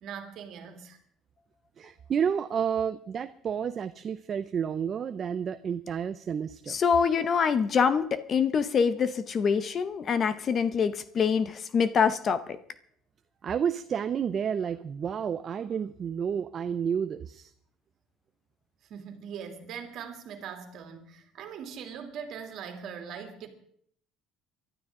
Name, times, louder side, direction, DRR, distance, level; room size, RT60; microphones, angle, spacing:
voice 1, 0.0-1.0 18.9-23.5, right 7 dB, 55° right, 2.6 m, -41 dB
voice 2, 1.8-6.8 13.4-17.5, right 7 dB, 35° right, 0.5 m, -30 dB
voice 3, 6.7-12.6, left 6 dB, 35° left, 0.7 m, -25 dB
23.0 x 12.0 x 3.7 m
cardioid pair, 145°, 0 cm